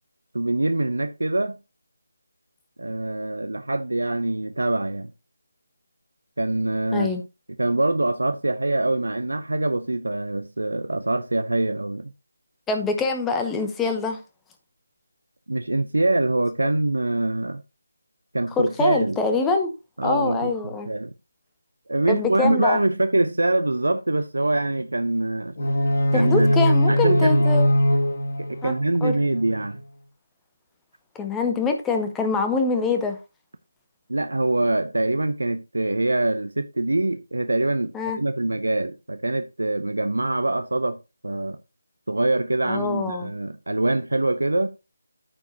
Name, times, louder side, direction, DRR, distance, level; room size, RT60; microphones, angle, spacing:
voice 1, 0.3-1.6 2.8-5.1 6.4-7.1 7.6-12.1 15.5-17.6 18.3-19.2 20.0-21.1 21.9-25.5 26.1-26.6 26.9-27.4 28.4-29.8 34.1-37.9 38.2-41.0 41.2-41.6 42.1-44.7, right 2 dB, 70° right, 0.7 m, -24 dB
voice 2, 6.9-7.2 12.7-14.2 18.6-19.7 20.0-20.9 22.1-22.8 26.1-27.7 28.6-28.7 29.0-29.2 31.1-33.2 37.9-38.2 42.6-43.3, left 4 dB, 5° left, 1.0 m, -24 dB
sound 1, 25.6-29.6, equal, 50° left, 1.9 m, -21 dB
13.5 x 4.7 x 2.8 m
figure-of-eight pair, 155°, 0 cm